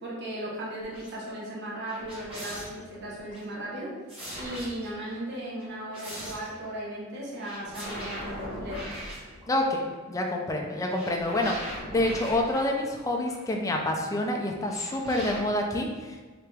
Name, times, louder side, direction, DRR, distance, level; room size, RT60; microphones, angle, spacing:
voice 1, 0.0-3.9 4.4-8.9, right 1 dB, 55° right, -5 dB, 0.9 m, -36 dB
sound 1, 0.8-1.1 1.9-3.4 4.1-5.1 5.6-6.6 7.4-9.9 10.9-13.5 14.7-15.4, equal, 25° right, 1.2 m, -40 dB
voice 2, 9.5-16.2, left 1 dB, 15° left, 1 dB, 0.4 m, -28 dB
3.3 x 2.9 x 3.3 m, 1.3 s
head